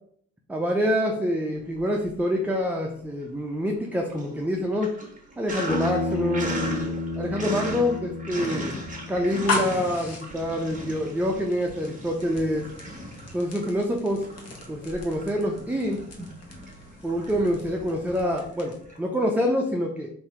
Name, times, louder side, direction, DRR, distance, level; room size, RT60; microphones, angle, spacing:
voice 1, 0.5-4.9 5.4-8.7 9.1-12.7 13.3-14.3 14.7-16.1 17.0-20.1, equal, 5° right, 1 dB, 0.5 m, -26 dB
Sink (filling or washing), 1.6-2.5 2.9-19.0, right 1 dB, 25° right, 1.4 m, -39 dB
Bass guitar, 5.7-9.9, left 2 dB, 15° left, 1.1 m, -31 dB
sound 1, 9.4-19.0, left 3 dB, 55° left, 1.3 m, -37 dB
3.9 x 2.7 x 4.4 m, 0.64 s
cardioid pair, 90°, 30 cm